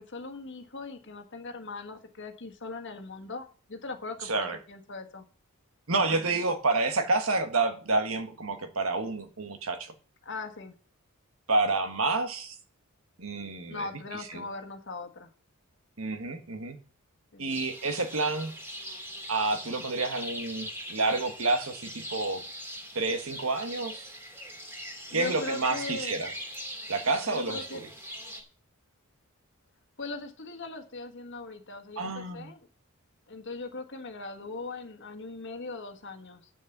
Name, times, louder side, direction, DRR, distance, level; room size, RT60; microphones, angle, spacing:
voice 1, 0.0-5.2 10.2-10.7 13.7-15.3 17.3-17.6 25.1-26.2 27.3-27.8 30.0-32.7 33.3-36.5, left 3 dB, 55° left, 6 dB, 1.5 m, -40 dB
voice 2, 4.2-4.6 5.9-9.9 11.5-12.6 13.2-13.9 14.3-14.4 16.0-16.8 17.4-18.5 19.3-22.4 22.9-24.1 25.1-26.3 26.9-27.9 32.0-32.5, right 3 dB, 65° right, 7 dB, 1.4 m, -29 dB
sound 1, 17.5-28.4, equal, 10° right, 2.6 m, -41 dB
8.6 x 6.5 x 7.2 m, 0.42 s
head